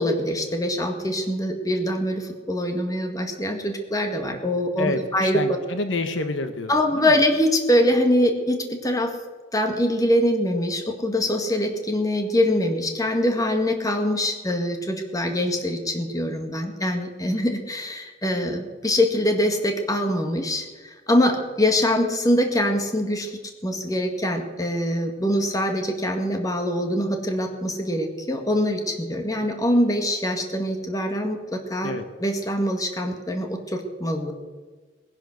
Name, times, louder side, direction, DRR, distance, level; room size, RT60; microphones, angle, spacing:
voice 1, 0.0-5.4 6.7-9.2 9.5-23.3 23.6-31.9 32.2-34.3, left 1 dB, 20° left, 4 dB, 1.8 m, -24 dB
voice 2, 4.8-7.2 31.8-32.1, left 3 dB, 75° left, 8 dB, 1.3 m, -28 dB
20.0 x 10.5 x 6.5 m, 1.4 s
head